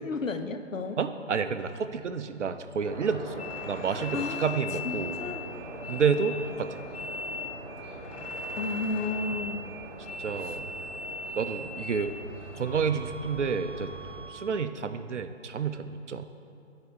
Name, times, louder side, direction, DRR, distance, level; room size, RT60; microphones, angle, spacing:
voice 1, 0.0-1.0 3.9-4.5 4.8-5.5 8.6-9.7 10.4-10.6, left 3 dB, 85° left, 8 dB, 0.7 m, -33 dB
voice 2, 1.0-5.2 5.9-6.8 10.2-10.7 11.4-12.1 12.5-13.9 14.3-16.3, right 6 dB, 65° right, 10 dB, 0.6 m, -30 dB
sound 1, 2.8-14.2, right 1 dB, 15° right, 1.4 m, -42 dB
sound 2, 3.4-12.3 12.6-14.5, left 3 dB, 55° left, 0.8 m, -40 dB
10.5 x 4.8 x 4.5 m, 2.5 s
figure-of-eight pair, 145°, 38 cm